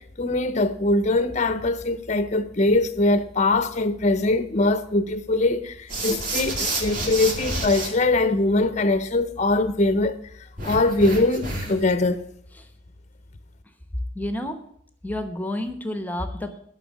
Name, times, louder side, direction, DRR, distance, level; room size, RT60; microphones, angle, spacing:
voice 1, 0.0-10.2 10.6-12.2, left 2 dB, 35° left, 0.7 m, -22 dB
sound 1, 5.9-7.9 10.6-11.9, right 2 dB, 40° right, 2.4 m, -29 dB
voice 2, 14.1-14.6 15.0-16.6, left 1 dB, 10° left, 0.9 m, -29 dB
11.0 x 5.9 x 8.4 m
head